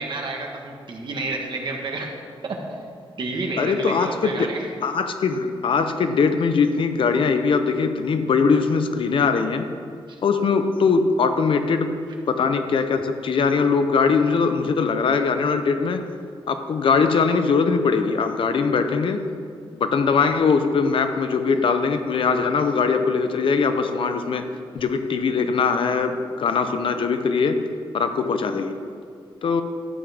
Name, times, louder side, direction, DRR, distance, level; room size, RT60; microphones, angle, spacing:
voice 1, 0.0-2.1 2.4-2.6 3.2-4.6 5.4-5.5, right 3 dB, 55° right, 1 dB, 1.5 m, -30 dB
voice 2, 3.6-4.5 4.8-9.7 10.2-12.0 12.3-16.0 16.5-19.3 19.7-24.5 24.7-27.6 27.9-28.7 29.4-29.6, left 5 dB, 65° left, 8 dB, 0.7 m, -21 dB
12.5 x 8.9 x 3.6 m, 2.2 s
wide cardioid pair, 115°, 10 cm